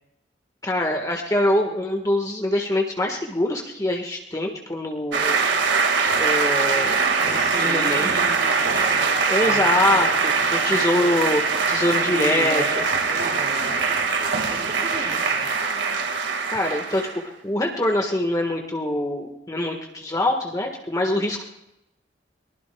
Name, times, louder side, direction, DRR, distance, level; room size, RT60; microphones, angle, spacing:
voice 1, 0.6-5.4 6.1-8.1 9.3-11.4 11.7-12.8 16.5-17.1 17.4-21.5, left 1 dB, 20° left, 2 dB, 1.5 m, -24 dB
sound 1, 5.1-17.2, right 5 dB, 85° right, 1.9 m, -22 dB
voice 2, 7.2-11.2 11.9-15.5, right 1 dB, 45° right, -7 dB, 3.8 m, -35 dB
22.5 x 20.0 x 2.3 m, 0.87 s
head